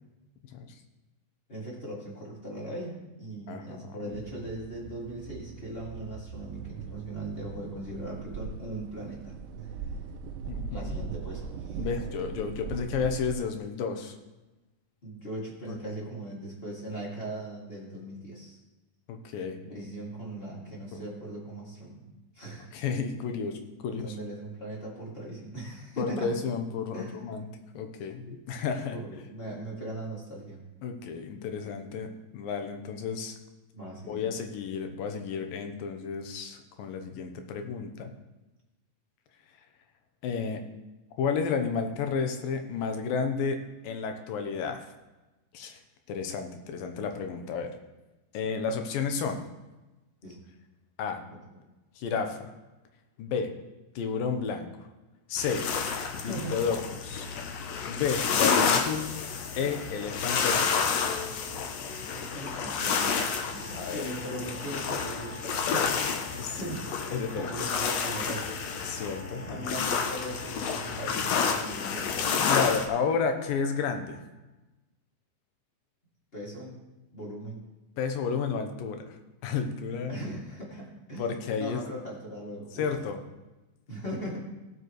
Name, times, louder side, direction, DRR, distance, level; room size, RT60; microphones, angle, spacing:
voice 1, 1.5-9.3 9.6-9.7 10.7-11.8 15.0-18.6 19.7-22.7 23.9-26.3 26.9-27.2 28.2-28.4 28.9-30.6 33.7-34.3 50.2-50.4 51.5-51.6 56.3-56.6 59.6-59.7 61.8-65.9 66.2-68.5 69.0-72.2 76.3-76.8 77.1-77.6 80.1-81.3 81.6-82.9 83.9-84.4, right 1 dB, 20° left, -4 dB, 2.2 m, -39 dB
voice 2, 3.5-4.2 10.4-11.0 11.8-14.2 15.7-15.8 19.1-19.6 20.9-21.0 22.7-24.2 26.0-27.5 27.7-29.0 30.8-32.1 32.3-33.4 34.1-38.1 40.2-40.6 41.2-43.6 43.8-44.8 45.5-45.8 46.1-47.7 48.3-49.4 51.0-51.2 52.0-52.5 53.2-53.5 54.0-54.9 55.3-55.6 56.1-57.3 57.8-59.1 59.6-60.9 63.8-64.1 66.4-66.8 67.1-67.5 68.8-69.8 72.4-74.2 78.0-80.2 81.2-81.8 82.7-83.2, left 6 dB, 90° left, 5 dB, 2.7 m, -32 dB
sound 1, 4.1-13.3, right 5 dB, 85° right, 2.4 m, -40 dB
sound 2, 55.4-72.9, left 6 dB, 70° left, 1.6 m, -30 dB
Wind instrument woodwind instrument, 63.4-74.2, right 2 dB, 20° right, 1.9 m, -50 dB
18.0 x 7.8 x 3.2 m, 1.1 s
omnidirectional pair, 4.0 m